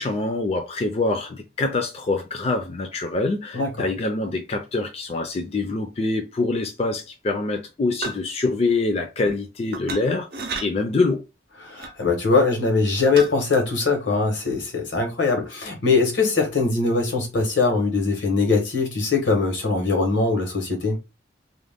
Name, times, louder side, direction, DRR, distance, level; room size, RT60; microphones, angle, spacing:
voice 1, 0.0-10.3 10.6-11.2, left 3 dB, 35° left, 0.4 m, -25 dB
voice 2, 3.5-3.9 11.6-21.0, left 4 dB, 85° left, 1.1 m, -22 dB
sound 1, 8.0-8.3 9.7-10.0 10.3-10.6 11.8-11.9 13.2-13.3, right 3 dB, 55° right, 0.5 m, -30 dB
2.4 x 2.1 x 3.4 m
head